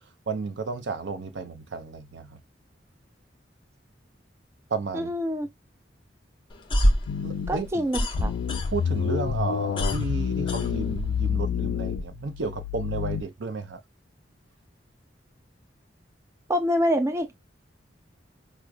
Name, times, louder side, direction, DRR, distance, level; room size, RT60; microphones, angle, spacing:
voice 1, 0.3-2.4 4.7-5.1 7.2-7.9 8.7-13.8, right 4 dB, 75° right, 0.6 m, -32 dB
voice 2, 4.9-5.5 7.5-8.3 16.5-17.3, equal, 15° right, 0.4 m, -26 dB
sound 1, 6.5-9.1 9.4-11.3, equal, 25° left, 0.6 m, -26 dB
sound 2, 7.1-7.7 8.1-13.2, left 7 dB, 85° left, 0.3 m, -29 dB
4.6 x 2.1 x 2.4 m
head